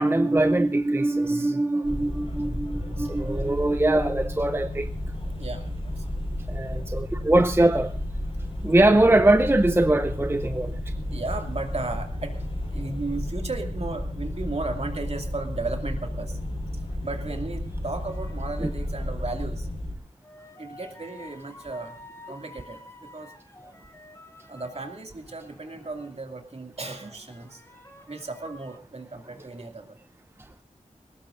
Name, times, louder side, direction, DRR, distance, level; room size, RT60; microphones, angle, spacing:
voice 1, 0.0-4.9 6.5-7.9 8.6-10.8 18.6-18.7, right 1 dB, 15° right, 0.6 m, -22 dB
voice 2, 1.2-3.4 5.4-6.0 6.7-6.8 11.0-12.3 12.7-16.4 16.7-19.7 20.6-22.0 22.3-23.3 24.5-27.6 28.1-30.0, right 3 dB, 50° right, 2.5 m, -35 dB
sound 1, 1.8-19.9, left 1 dB, 45° left, 4.5 m, -32 dB
sound 2, 18.1-19.3 20.2-26.4 26.8-28.8, left 2 dB, 20° left, 2.3 m, -50 dB
21.5 x 18.5 x 2.6 m
wide cardioid pair, 85°, 13 cm